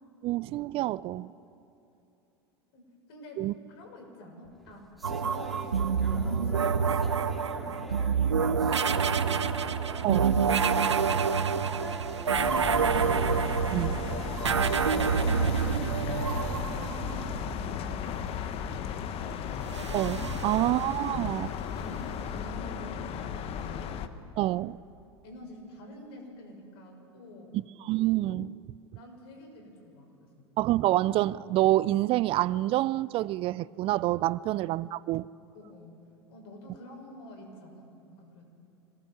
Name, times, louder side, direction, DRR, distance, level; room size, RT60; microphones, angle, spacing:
voice 1, 0.2-1.3 3.4-3.5 10.0-10.3 13.7-13.9 19.9-21.5 24.4-24.8 27.5-28.6 30.6-35.3, right 16 dB, 40° right, 0.4 m, -27 dB
voice 2, 2.7-9.6 10.0-10.3 11.0-13.2 13.6-19.5 20.4-20.7 21.0-23.9 25.2-27.5 28.9-30.5 34.4-34.5 35.5-36.0 36.3-38.5, equal, 65° left, 6.4 m, -48 dB
sound 1, 4.4-17.9, equal, ahead, 2.8 m, -45 dB
sound 2, 5.0-17.6 19.6-21.3, right 6 dB, 85° right, 0.8 m, -28 dB
sound 3, 12.3-24.1, left 8 dB, 45° left, 1.3 m, -35 dB
25.5 x 18.5 x 7.5 m
figure-of-eight pair, 85°, 14 cm